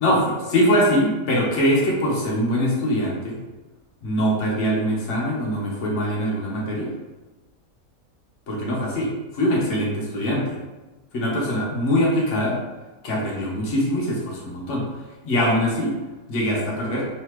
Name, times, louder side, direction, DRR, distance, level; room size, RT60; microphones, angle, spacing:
voice 1, 0.0-3.4 4.0-6.9 8.5-10.6 11.1-12.6 13.0-14.9 15.2-15.9 16.3-17.1, equal, 55° left, -5 dB, 1.3 m, -22 dB
3.9 x 3.2 x 3.1 m, 1.2 s
omnidirectional pair, 1.6 m